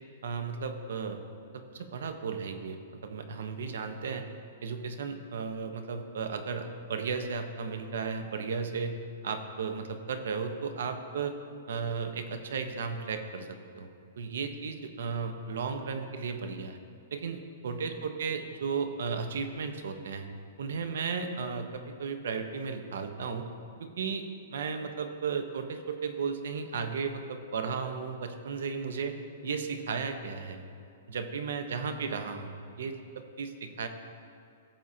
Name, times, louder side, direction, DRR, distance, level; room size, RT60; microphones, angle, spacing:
voice 1, 0.2-1.2 1.5-4.2 4.6-9.0 9.2-11.3 11.7-13.9 14.2-16.8 17.1-20.3 20.6-23.5 23.8-24.2 24.5-29.1 29.4-30.6 31.1-33.9, right 5 dB, 80° right, 7 dB, 1.0 m, -35 dB
17.0 x 7.4 x 2.8 m, 2.4 s
hypercardioid pair, 160°, 0 cm